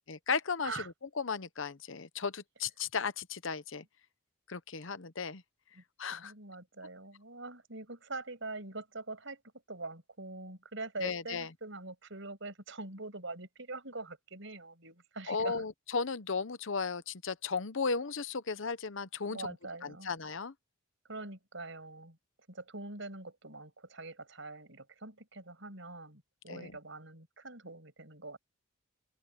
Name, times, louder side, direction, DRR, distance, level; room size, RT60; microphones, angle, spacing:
voice 1, 0.1-0.8 1.2-3.8 4.5-5.4 6.0-6.3 11.0-11.5 15.3-19.5 19.8-20.5 26.5-26.7, left 5 dB, 65° left, 0.9 m, -35 dB
voice 2, 6.2-9.4 9.7-15.5 19.3-20.1 21.1-22.2 22.5-28.4, right 3 dB, 60° right, 6.9 m, -44 dB
head